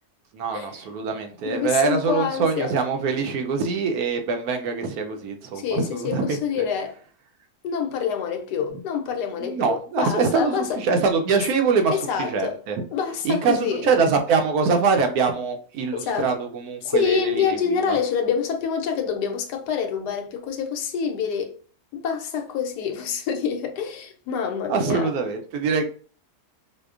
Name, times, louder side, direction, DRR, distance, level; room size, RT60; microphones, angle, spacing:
voice 1, 0.3-6.4 9.4-12.8 13.2-18.0 24.7-25.8, right 5 dB, 75° right, 1.0 m, -24 dB
voice 2, 1.4-2.7 5.5-7.0 7.6-10.8 11.9-12.5 12.9-13.8 15.9-16.3 16.8-21.5 21.9-25.1, left 7 dB, 85° left, 1.2 m, -26 dB
5.0 x 2.1 x 2.3 m
omnidirectional pair, 1.7 m